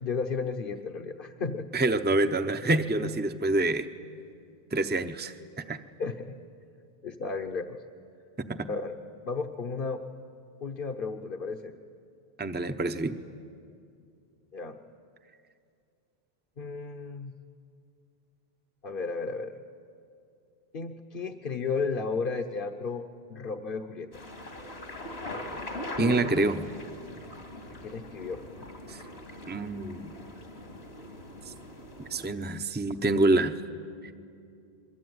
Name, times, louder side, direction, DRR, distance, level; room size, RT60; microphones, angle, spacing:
voice 1, 0.0-1.7 6.0-6.3 7.0-7.8 8.7-9.0 9.3-10.0 10.6-11.7 14.5-14.8 16.6-17.3 18.8-19.5 20.7-24.2 27.7-28.7, left 4 dB, 55° left, 3 dB, 1.2 m, -33 dB
voice 2, 1.7-3.9 4.7-5.3 5.7-5.8 8.4-8.8 12.4-13.2 26.0-26.6 28.9-29.0 29.5-30.1 31.5-31.6 32.1-33.6 34.0-34.1, right 2 dB, 10° right, 8 dB, 0.7 m, -27 dB
sound 1, 24.1-32.3, left 1 dB, 80° left, 3.2 m, -40 dB
27.0 x 22.5 x 9.5 m, 2.4 s
omnidirectional pair, 1.1 m